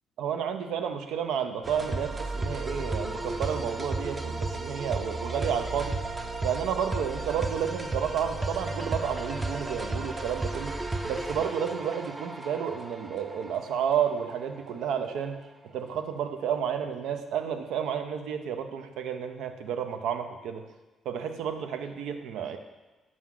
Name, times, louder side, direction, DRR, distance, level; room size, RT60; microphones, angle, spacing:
voice 1, 0.2-6.0 6.4-10.8 11.0-15.4 15.7-20.6 21.1-22.6, right 8 dB, 85° right, 7 dB, 0.6 m, -31 dB
sound 1, 1.6-15.0, right 2 dB, 25° right, 0.5 m, -34 dB
6.1 x 6.1 x 3.7 m, 1.2 s
cardioid pair, 90°, 0 cm